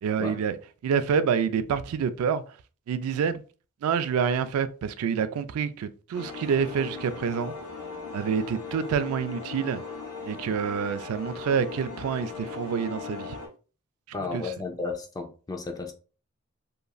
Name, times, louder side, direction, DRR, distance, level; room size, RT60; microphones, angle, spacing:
voice 1, 0.0-0.6 0.8-2.4 2.9-3.4 3.8-7.5 8.1-9.8 10.2-13.4 14.3-14.4, right 6 dB, 85° right, 0.3 m, -27 dB
sound 1, 6.1-13.5, left 5 dB, 80° left, 1.3 m, -38 dB
voice 2, 14.1-15.9, left 3 dB, 15° left, 0.4 m, -33 dB
2.9 x 2.5 x 2.3 m
head